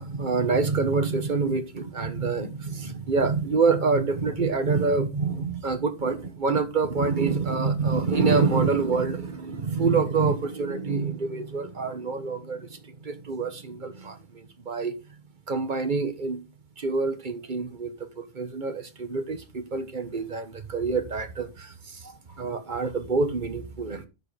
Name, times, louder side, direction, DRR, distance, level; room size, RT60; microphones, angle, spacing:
voice 1, 0.0-14.9 15.5-16.4 16.8-24.1, right 4 dB, 45° right, 1.4 m, -26 dB
11.0 x 7.6 x 3.4 m
omnidirectional pair, 1.2 m